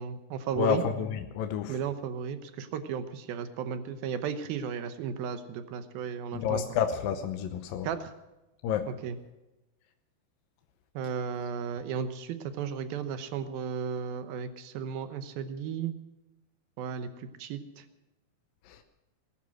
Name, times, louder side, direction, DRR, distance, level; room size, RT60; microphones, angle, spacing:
voice 1, 0.0-0.8 1.7-6.6 7.8-8.1 8.9-9.2 10.9-15.9 16.8-17.8, right 7 dB, 75° right, 10 dB, 2.7 m, -34 dB
voice 2, 0.6-1.7 6.3-7.9 8.6-8.9, left 8 dB, 75° left, 7 dB, 2.4 m, -29 dB
19.5 x 11.5 x 6.3 m, 1.0 s
omnidirectional pair, 4.6 m